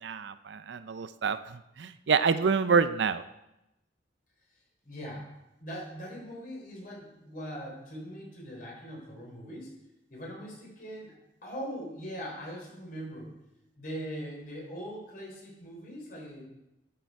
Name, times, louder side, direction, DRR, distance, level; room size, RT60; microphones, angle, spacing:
voice 1, 0.0-3.2, right 5 dB, 70° right, 13 dB, 0.5 m, -27 dB
voice 2, 4.8-5.3 5.6-9.7 10.1-11.2 11.4-13.3 13.8-16.5, equal, 50° left, -2 dB, 3.6 m, -41 dB
11.5 x 6.8 x 4.6 m, 0.90 s
head